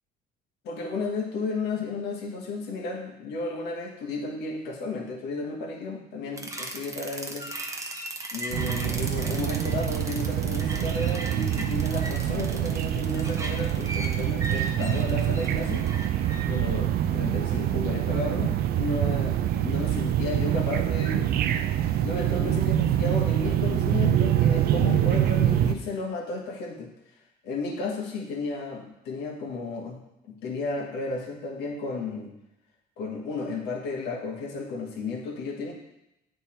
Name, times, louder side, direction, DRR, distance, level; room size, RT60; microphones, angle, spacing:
voice 1, 0.6-7.5 8.3-15.9 16.5-21.3 22.0-26.9 27.4-30.0 30.3-32.3 33.0-35.7, left 3 dB, 80° left, 1 dB, 1.3 m, -33 dB
sound 1, 6.4-16.4, right 2 dB, 20° right, 0.9 m, -37 dB
sound 2, 8.5-25.7, right 11 dB, 65° right, 0.4 m, -25 dB
8.5 x 3.5 x 4.3 m, 0.87 s
cardioid pair, 110°, 17 cm